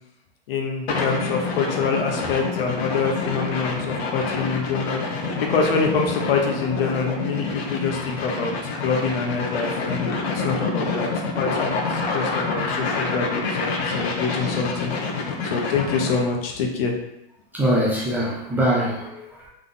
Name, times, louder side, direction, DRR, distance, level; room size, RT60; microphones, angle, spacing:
voice 1, 0.5-11.1 11.4-16.9 18.5-18.6, left 5 dB, 65° left, 1 dB, 1.1 m, -26 dB
sound 1, 0.9-16.3, left 4 dB, 90° left, 1.0 m, -27 dB
voice 2, 17.5-19.5, equal, 5° right, -5 dB, 0.6 m, -23 dB
3.8 x 3.4 x 3.8 m, 0.85 s
supercardioid pair, 150°, 31 cm